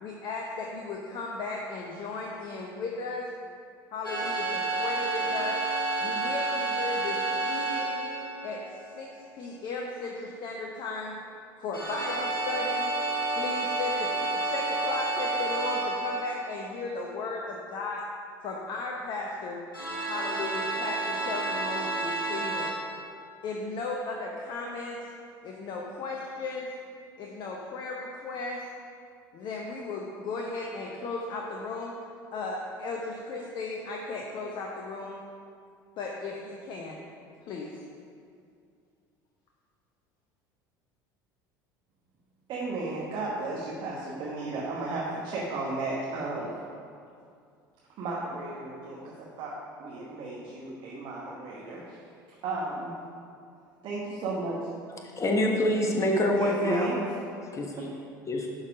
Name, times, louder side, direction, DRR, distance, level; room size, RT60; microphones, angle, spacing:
voice 1, 0.0-3.3 3.9-5.6 6.0-8.0 8.4-8.6 8.9-11.2 11.6-12.9 13.3-18.0 18.4-19.6 20.1-22.7 23.4-25.0 25.4-26.7 27.2-28.6 29.3-31.9 32.3-35.2 36.0-37.0 37.5-37.7, left 3 dB, 45° left, -1 dB, 0.9 m, -36 dB
sound 1, 4.0-9.0 11.7-16.9 19.7-22.7, right 2 dB, 90° left, 1.5 m, -30 dB
voice 2, 42.5-46.5 48.0-49.5 49.8-51.9 52.4-52.9 53.8-54.6 56.3-57.1, right 2 dB, 45° right, -4 dB, 1.4 m, -33 dB
voice 3, 55.2-56.9 57.5-57.7 58.3-58.5, left 1 dB, 30° left, 1 dB, 1.4 m, -25 dB
11.0 x 4.9 x 5.0 m, 2.4 s
figure-of-eight pair, 65°, 11 cm